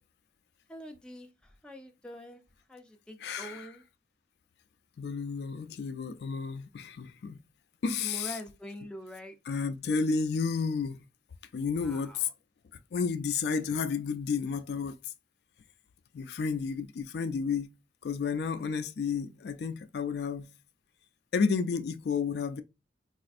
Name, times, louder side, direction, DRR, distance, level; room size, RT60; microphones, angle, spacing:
voice 1, 0.7-2.4 2.7-3.8 8.0-9.4 11.8-12.3, equal, 5° left, 0.4 m, -44 dB
voice 2, 3.2-3.7 5.0-7.4 7.8-8.4 9.5-11.0 11.5-12.3 12.9-15.0 16.1-17.7 18.0-20.5 21.3-22.6, left 5 dB, 65° left, 0.3 m, -31 dB
4.1 x 2.4 x 2.5 m
head